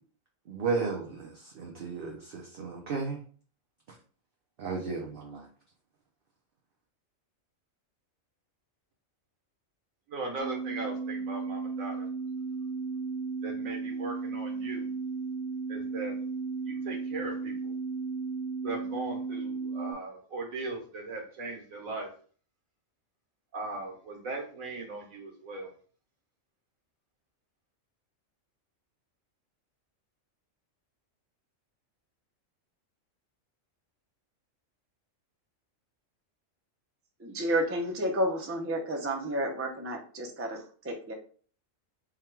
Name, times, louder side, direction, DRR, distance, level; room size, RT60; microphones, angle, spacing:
voice 1, 0.5-3.2 4.6-5.4, right 4 dB, 50° right, 0.7 m, -34 dB
voice 2, 10.1-12.1 13.4-14.9 15.7-16.2 16.7-17.7 18.6-22.1 23.5-25.7, right 3 dB, 80° right, 1.6 m, -38 dB
sound 1, 10.4-19.9, right 4 dB, 75° left, 0.3 m, -35 dB
voice 3, 37.2-41.1, right 1 dB, 20° right, 0.3 m, -31 dB
3.6 x 2.2 x 4.4 m
omnidirectional pair, 1.4 m